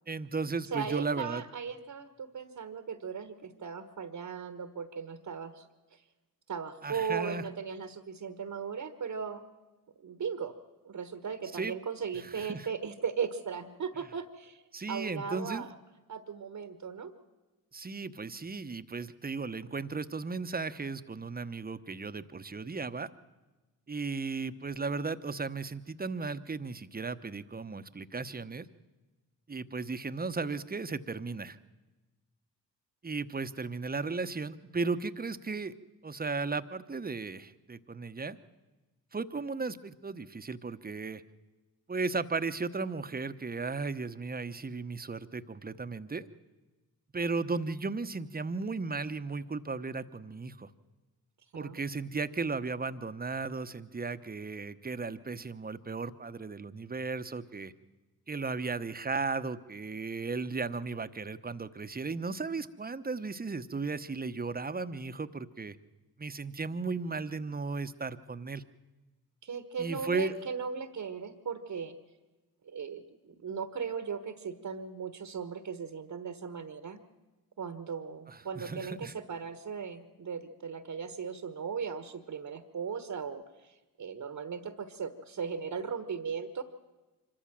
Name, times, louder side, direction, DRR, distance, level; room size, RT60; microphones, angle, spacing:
voice 1, 0.1-1.4 6.8-7.4 11.5-11.7 12.2-12.7 14.7-15.7 17.7-23.1 23.9-28.7 29.5-31.6 33.0-35.7 36.0-38.4 39.1-41.2 41.9-46.3 47.1-50.7 51.5-57.7 58.3-65.8 66.2-68.6 69.8-70.3 78.3-79.1, right 4 dB, 25° right, 12 dB, 1.0 m, -35 dB
voice 2, 0.7-5.7 5.9-6.0 6.5-9.4 10.0-10.5 10.8-14.6 14.9-15.7 16.1-17.1 51.5-51.8 69.4-72.0 72.7-77.0 77.6-86.6, right 6 dB, 55° right, 10 dB, 1.3 m, -37 dB
25.0 x 13.5 x 7.6 m, 1.2 s
supercardioid pair, 50°, 39 cm